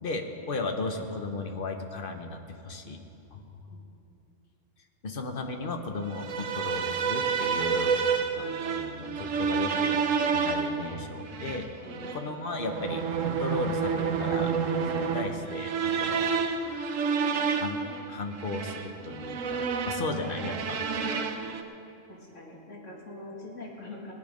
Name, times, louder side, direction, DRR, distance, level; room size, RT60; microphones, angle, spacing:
voice 1, 0.0-3.0 3.3-3.6 5.0-8.0 8.4-10.0 10.3-11.7 12.1-14.6 14.8-16.3 17.5-17.8 18.1-20.8, left 3 dB, 45° left, 5 dB, 1.1 m, -35 dB
sound 1, 6.1-21.6, right 6 dB, 75° right, 1.2 m, -29 dB
voice 2, 11.8-12.6 20.4-20.6 22.1-24.1, left 2 dB, 65° left, -2 dB, 2.3 m, -45 dB
18.5 x 10.5 x 5.1 m, 2.8 s
omnidirectional pair, 1.4 m